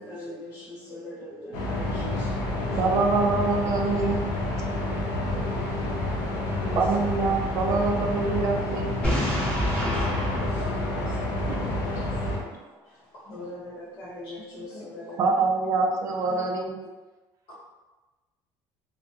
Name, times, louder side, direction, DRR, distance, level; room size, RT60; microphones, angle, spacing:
voice 1, 0.0-3.0 5.2-7.0 7.7-7.8 9.1-15.3, left 1 dB, 40° left, -9 dB, 0.9 m, -43 dB
sound 1, 1.5-12.4, left 1 dB, 90° left, 0.6 m, -29 dB
voice 2, 2.8-4.3 6.8-9.0 15.2-16.8, right 4 dB, 35° right, 1 dB, 0.3 m, -25 dB
Boom, 9.0-11.9, equal, 15° left, 0.9 m, -29 dB
voice 3, 12.8-13.5 14.2-14.3 14.7-14.8 15.3-15.4 16.3-16.4 17.5-17.6, left 2 dB, 70° left, -7 dB, 1.2 m, -48 dB
2.2 x 2.0 x 2.8 m, 1.2 s
cardioid pair, 165°, 9 cm